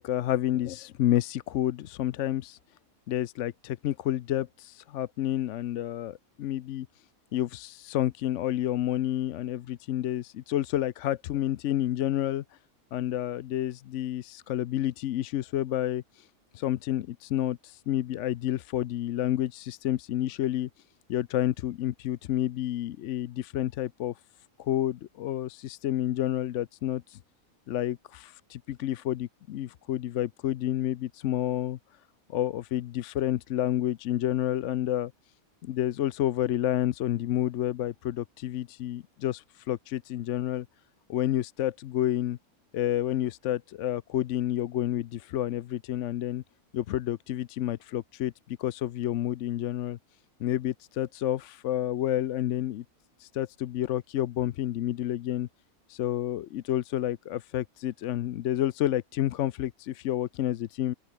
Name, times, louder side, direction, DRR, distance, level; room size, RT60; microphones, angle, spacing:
voice 1, 0.0-2.6 3.1-6.9 7.3-12.4 12.9-16.3 16.5-20.7 21.1-24.1 24.6-27.2 27.7-31.8 32.3-35.1 35.6-40.7 41.1-42.4 42.7-46.4 46.7-50.0 50.4-52.8 53.2-55.5 55.9-60.9, left 12 dB, 65° left, 0.9 m, -29 dB
open air
omnidirectional pair, 1.5 m